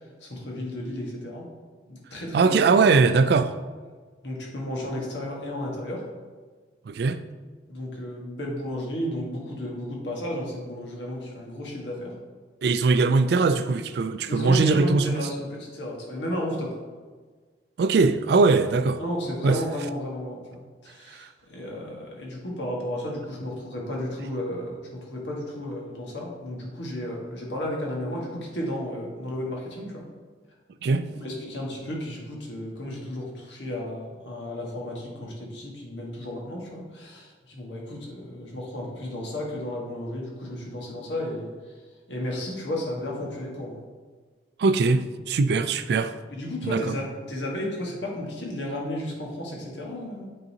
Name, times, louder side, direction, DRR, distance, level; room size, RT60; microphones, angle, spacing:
voice 1, 0.2-1.5 1.9-2.5 4.2-6.0 7.7-12.1 14.3-16.8 19.0-30.0 31.1-41.5 42.1-43.8 46.3-50.3, left 1 dB, 85° left, 1.5 m, -33 dB
voice 2, 2.3-3.5 6.9-7.2 12.6-15.2 17.8-19.0 19.4-19.6 21.1-21.3 30.8-31.1 44.6-46.2 46.6-47.0, right 4 dB, 65° right, 0.3 m, -21 dB
8.9 x 3.9 x 2.8 m
head